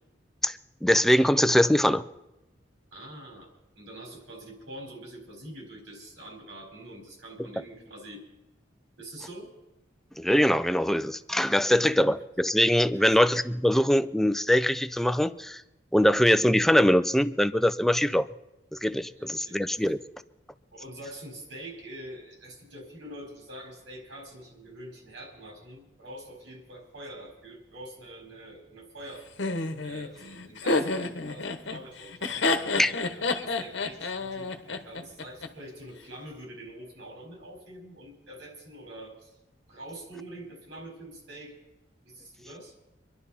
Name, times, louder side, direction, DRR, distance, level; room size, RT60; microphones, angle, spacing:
voice 1, 0.4-2.0 10.2-15.6 15.9-18.3 18.7-20.0 32.8-32.9, equal, ahead, 11 dB, 0.4 m, -23 dB
voice 2, 2.9-8.2 9.0-9.5 12.9-13.1 19.2-19.9 20.7-29.3 29.8-32.6 32.9-39.4 39.7-41.6 42.0-42.7, right 1 dB, 80° right, 0 dB, 4.5 m, -45 dB
Laughter, 29.4-35.5, left 3 dB, 75° left, 1.1 m, -29 dB
25.0 x 11.0 x 4.2 m, 0.97 s
head